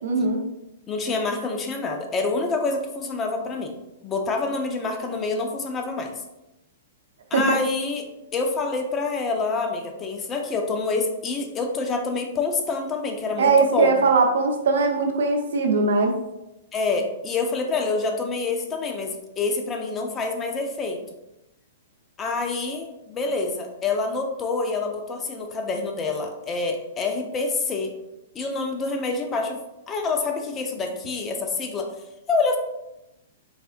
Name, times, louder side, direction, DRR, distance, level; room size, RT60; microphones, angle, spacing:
voice 1, 0.0-0.4 7.3-7.6 13.4-16.2, right 4 dB, 70° right, 3 dB, 0.7 m, -20 dB
voice 2, 0.9-3.7 4.0-6.1 7.3-8.1 8.3-14.0 16.7-21.0 22.2-27.9 28.3-29.6 29.9-31.9 32.3-32.6, left 3 dB, 25° left, 3 dB, 0.6 m, -27 dB
4.2 x 3.4 x 2.5 m, 0.92 s
hypercardioid pair, 120°, 0 cm